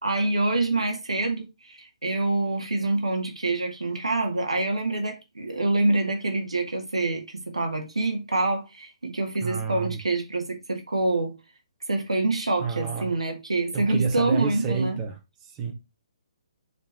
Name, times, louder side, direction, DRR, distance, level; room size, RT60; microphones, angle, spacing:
voice 1, 0.0-11.3 11.9-15.0, right 2 dB, 85° right, 1.7 m, -26 dB
voice 2, 9.4-10.0 12.6-13.1 13.7-15.7, right 5 dB, 25° right, 1.8 m, -29 dB
5.3 x 4.4 x 4.6 m
figure-of-eight pair, 135°, 3 cm